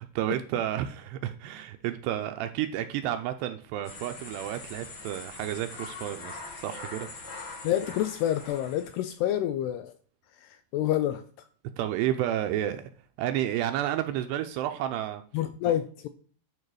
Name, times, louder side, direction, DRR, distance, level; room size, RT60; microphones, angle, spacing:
voice 1, 0.0-7.1 11.8-12.8 13.2-15.2 15.7-15.8, right 12 dB, 80° right, 8 dB, 2.6 m, -31 dB
sound 1, 3.8-9.1, left 3 dB, 60° left, 1.2 m, -43 dB
voice 2, 7.6-9.9 10.4-11.2 15.3-16.1, left 12 dB, 80° left, 10 dB, 2.4 m, -28 dB
11.0 x 4.8 x 4.8 m, 0.43 s
omnidirectional pair, 5.2 m